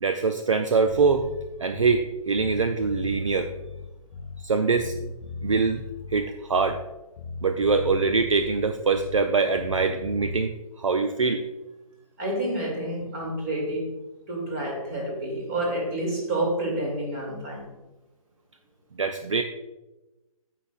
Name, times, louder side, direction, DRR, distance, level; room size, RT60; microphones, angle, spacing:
voice 1, 0.0-1.3 1.6-3.5 4.4-4.9 5.4-5.8 6.1-6.8 7.4-11.5 19.0-19.4, right 4 dB, 60° right, 7 dB, 0.6 m, -23 dB
Bass guitar, 0.9-2.1 2.4-4.5 4.8-6.9 7.2-9.3 9.6-10.4, left 2 dB, 30° left, 0.8 m, -37 dB
voice 2, 12.2-13.9 14.3-17.7, right 1 dB, 25° right, -1 dB, 2.5 m, -29 dB
15.5 x 5.8 x 2.4 m, 1.0 s
figure-of-eight pair, 140°, 19 cm